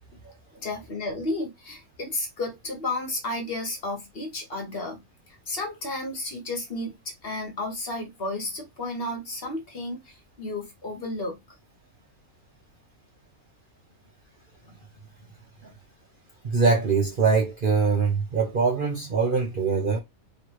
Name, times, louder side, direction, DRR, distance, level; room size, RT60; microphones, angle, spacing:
voice 1, 0.2-5.0 5.3-11.4, left 2 dB, 45° left, 1.2 m, -33 dB
voice 2, 16.4-20.0, right 4 dB, 45° right, 0.8 m, -23 dB
3.2 x 2.8 x 4.6 m
omnidirectional pair, 1.5 m